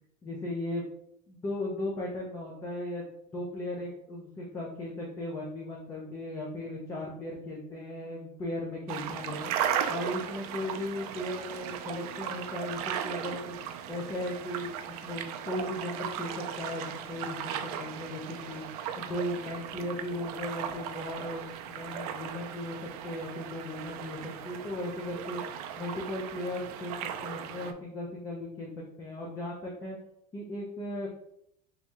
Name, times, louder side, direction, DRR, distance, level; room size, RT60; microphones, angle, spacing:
voice 1, 0.2-0.8 1.3-3.0 3.3-9.5 9.9-18.6 19.0-25.4 25.8-27.0 27.2-30.0 30.3-31.1, left 1 dB, 15° left, -3 dB, 0.4 m, -37 dB
sound 1, 8.9-27.7, right 9 dB, 65° right, 0.4 m, -37 dB
3.0 x 2.6 x 3.4 m, 0.77 s
supercardioid pair, 170°, 21 cm